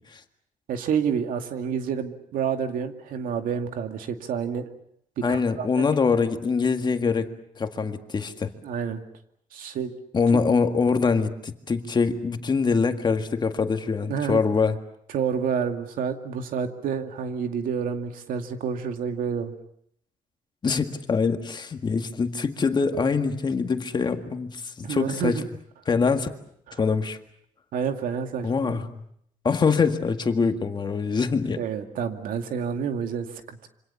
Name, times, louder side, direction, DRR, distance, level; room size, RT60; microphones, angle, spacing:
voice 1, 0.7-4.7 5.2-5.8 8.6-9.0 9.5-9.9 10.3-10.4 14.1-14.4 15.1-19.5 24.8-25.4 26.7-26.8 27.7-28.8 31.6-33.7, right 7 dB, 85° right, 6 dB, 2.4 m, -29 dB
voice 2, 5.2-7.3 7.6-8.5 10.1-14.8 20.6-25.4 25.9-26.3 26.8-27.2 28.4-29.0 29.4-31.6, left 5 dB, 30° left, 7 dB, 1.8 m, -24 dB
27.0 x 25.5 x 7.0 m, 0.70 s
cardioid pair, 130°, 14 cm